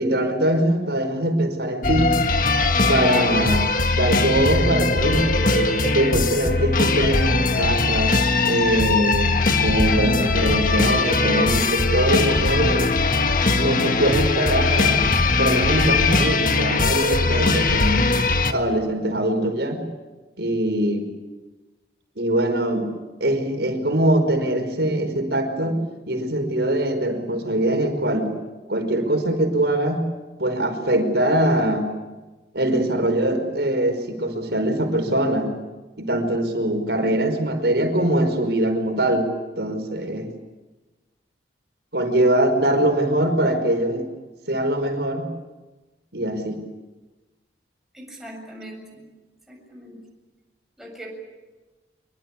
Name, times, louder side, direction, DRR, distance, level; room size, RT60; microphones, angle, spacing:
voice 1, 0.0-2.1 2.9-8.2 8.4-12.9 13.6-15.1 15.4-19.8 20.4-21.1 22.2-22.9 23.2-28.3 28.7-30.1 30.4-31.9 32.5-35.5 36.0-39.3 39.6-40.3 41.9-44.1 44.5-45.3 46.1-46.6, right 1 dB, 70° right, 6 dB, 5.2 m, -22 dB
sound 1, 1.8-18.5, left 3 dB, 50° left, 1.7 m, -20 dB
voice 2, 47.9-49.0 49.5-50.0 50.8-51.1, right 1 dB, ahead, -1 dB, 7.4 m, -40 dB
26.0 x 24.0 x 8.5 m, 1.2 s
head